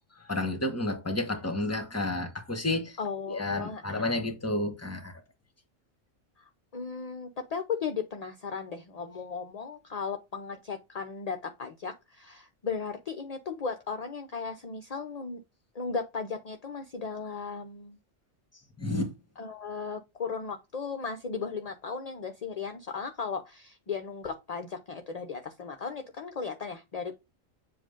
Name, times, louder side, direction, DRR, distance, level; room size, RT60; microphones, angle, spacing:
voice 1, 0.2-3.0 3.3-5.1 18.8-19.1, left 2 dB, 15° left, 0.9 m, -31 dB
voice 2, 3.0-4.0 6.4-15.4 15.7-18.0 19.4-27.1, left 5 dB, 45° left, 0.5 m, -36 dB
7.5 x 2.5 x 5.0 m
omnidirectional pair, 1.3 m